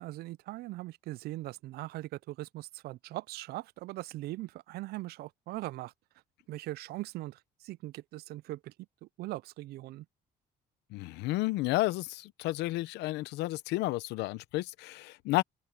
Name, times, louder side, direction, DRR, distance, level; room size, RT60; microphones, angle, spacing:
voice 1, 0.0-5.9 6.5-8.7 9.0-10.1, right 17 dB, 70° right, 0.4 m, -40 dB
voice 2, 10.9-15.4, left 18 dB, 90° left, 0.8 m, -31 dB
open air
cardioid pair, 110°, 17 cm